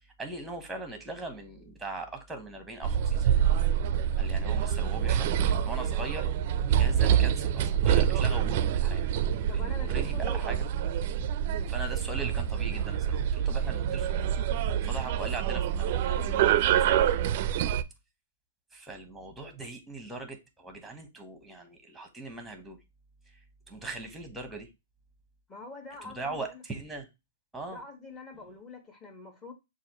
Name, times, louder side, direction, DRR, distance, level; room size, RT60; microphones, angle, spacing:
voice 1, 0.0-3.3 4.2-6.3 6.7-9.0 9.5-10.7 11.7-14.3 14.6-17.0 18.7-22.8 23.2-24.7 26.0-27.1 27.5-27.8, right 2 dB, 5° right, 1.1 m, -40 dB
sound 1, 2.8-17.8, right 9 dB, 50° right, 0.4 m, -26 dB
voice 2, 9.5-10.4 25.5-26.6 27.7-29.5, left 3 dB, 20° left, 1.4 m, -45 dB
6.3 x 2.5 x 2.9 m
hypercardioid pair, 140°, 0 cm